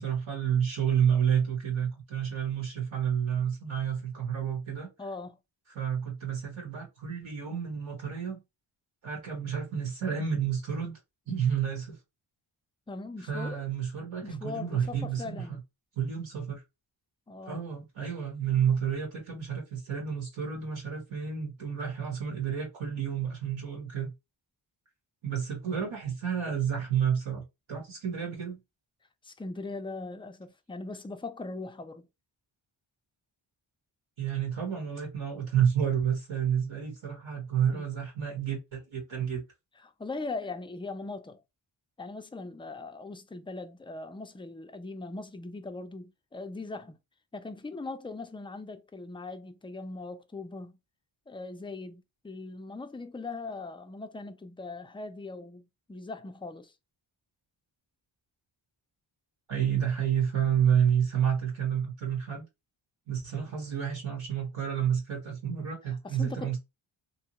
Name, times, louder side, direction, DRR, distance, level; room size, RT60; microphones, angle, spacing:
voice 1, 0.0-4.9 5.7-8.4 9.0-10.9 11.3-12.0 13.3-15.6 16.0-16.6 17.4-24.1 25.2-28.6 34.2-39.4 59.5-62.4 63.1-66.6, right 8 dB, 70° right, 1.2 m, -30 dB
voice 2, 5.0-5.4 12.9-13.6 14.2-15.6 17.3-17.6 29.2-32.1 37.7-37.9 39.8-41.4 42.0-47.0 47.3-50.7 51.3-56.7 66.0-66.6, left 3 dB, 10° left, 0.3 m, -40 dB
2.8 x 2.3 x 2.8 m
cardioid pair, 75°, 49 cm